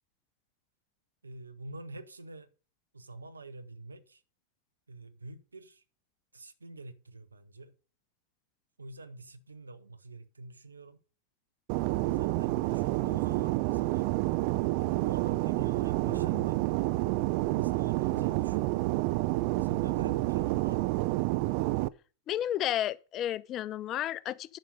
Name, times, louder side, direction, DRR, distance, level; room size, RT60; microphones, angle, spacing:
voice 1, 1.2-2.5 2.9-4.2 4.9-5.8 6.3-7.7 8.8-11.0 12.0-14.1 15.0-16.6 17.5-19.2 19.6-20.9, right 2 dB, 75° right, 1.0 m, -47 dB
Fixed-wing aircraft airplane, 11.7-21.9, right 20 dB, 45° right, 0.4 m, -29 dB
voice 2, 22.3-24.6, left 12 dB, 35° left, 0.4 m, -32 dB
10.5 x 6.1 x 5.2 m
figure-of-eight pair, 90°, 0 cm